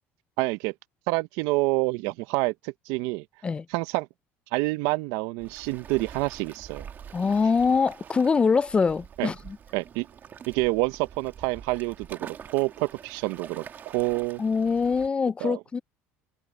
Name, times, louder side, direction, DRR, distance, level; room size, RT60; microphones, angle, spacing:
voice 1, 0.4-0.7 1.1-3.2 3.7-4.1 4.5-6.9 9.2-9.3 9.7-10.1 10.5-14.4 15.4-15.6, right 23 dB, 80° right, 0.6 m, -27 dB
Waves surf, 5.4-15.1, right 8 dB, 35° right, 1.7 m, -45 dB
voice 2, 7.1-9.6 14.4-15.8, left 5 dB, 20° left, 0.3 m, -24 dB
open air
cardioid pair, 135°, 6 cm